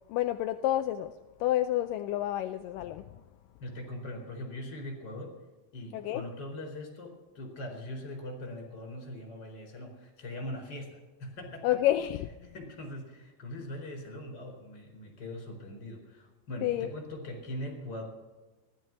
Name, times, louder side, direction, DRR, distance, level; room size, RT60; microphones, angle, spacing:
voice 1, 0.1-1.1 1.4-3.2 5.9-6.2 11.6-12.5 16.6-16.9, left 13 dB, 80° left, 2.2 m, -29 dB
voice 2, 3.6-5.3 5.7-11.7 12.4-18.0, left 1 dB, 30° left, 4.8 m, -41 dB
15.5 x 12.5 x 6.1 m
omnidirectional pair, 3.9 m